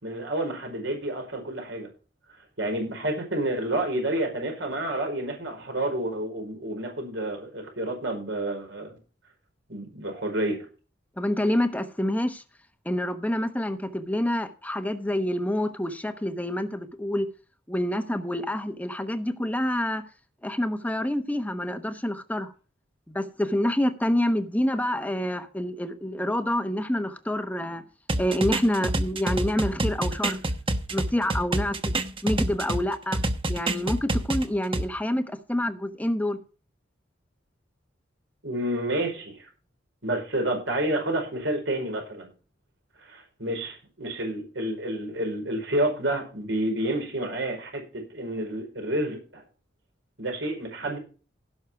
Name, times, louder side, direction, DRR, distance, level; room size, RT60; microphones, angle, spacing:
voice 1, 0.0-1.9 2.6-8.9 9.7-10.6 38.4-39.5 40.0-42.3 43.0-49.4 50.2-51.0, right 1 dB, 70° right, 4.9 m, -29 dB
voice 2, 11.2-12.4 12.8-17.3 17.7-20.0 20.4-22.5 23.1-27.8 28.2-30.4 30.9-31.9 32.2-33.2 33.5-36.4, left 1 dB, 10° left, 0.9 m, -27 dB
sound 1, 28.1-32.8 33.1-34.8, right 1 dB, 30° right, 1.2 m, -27 dB
16.5 x 6.5 x 4.6 m
head